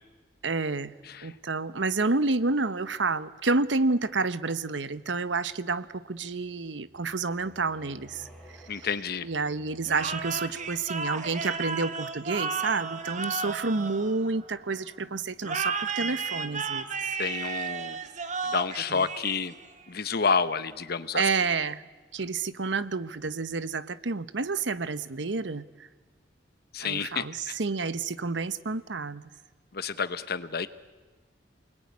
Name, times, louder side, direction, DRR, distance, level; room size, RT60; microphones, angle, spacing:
voice 1, 0.4-1.0 1.2-8.3 9.2-16.9 18.9-19.0 21.1-21.9 22.1-25.7 26.8-29.2, right 3 dB, 85° right, 14 dB, 1.0 m, -29 dB
sound 1, 6.9-11.5, equal, 5° left, 5.4 m, -54 dB
voice 2, 8.7-9.3 17.2-18.1 18.4-19.6 19.9-21.3 26.7-27.6 29.7-30.7, left 5 dB, 60° left, 13 dB, 1.1 m, -29 dB
sound 2, 9.8-14.7 15.4-19.8, right 5 dB, 45° right, 1.7 m, -33 dB
28.0 x 21.0 x 9.7 m, 1.3 s
head